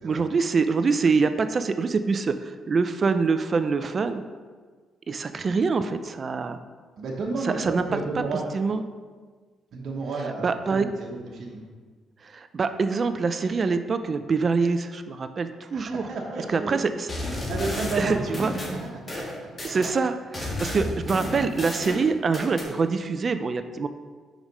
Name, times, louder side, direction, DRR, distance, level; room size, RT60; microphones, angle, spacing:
voice 1, 0.0-4.2 5.1-6.6 7.6-7.8 8.5-8.8 10.4-10.9 12.2-16.0 16.5-17.4 18.0-18.5 19.6-23.9, right 4 dB, 40° right, 10 dB, 0.4 m, -25 dB
voice 2, 7.0-8.5 9.7-11.6 15.7-17.0 17.5-18.3 18.7-19.9, right 3 dB, 65° right, -1 dB, 1.1 m, -32 dB
sound 1, 17.1-19.9 20.3-22.7, left 1 dB, 25° left, 1.5 m, -32 dB
5.0 x 5.0 x 5.3 m, 1.5 s
cardioid pair, 90°, 0 cm